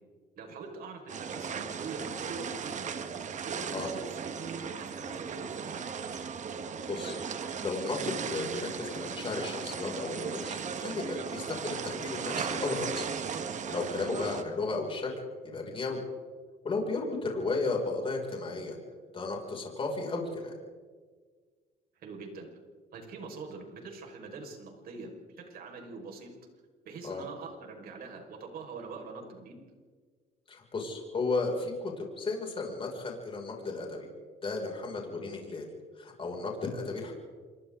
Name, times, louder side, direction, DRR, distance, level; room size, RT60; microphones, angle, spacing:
voice 1, 0.4-3.1 3.4-5.8 22.0-22.5 22.9-26.3 26.8-29.6, right 4 dB, 60° right, 2 dB, 5.5 m, -44 dB
sound 1, 1.1-14.4, right 6 dB, 45° right, 1.7 m, -37 dB
voice 2, 6.9-13.1 13.7-15.1 15.4-16.0 16.6-18.8 19.1-20.5 27.0-27.2 30.5-34.1 34.4-35.6 36.0-37.1, left 3 dB, 30° left, 0 dB, 6.4 m, -34 dB
27.5 x 24.0 x 4.0 m, 1.5 s
cardioid pair, 110°, 17 cm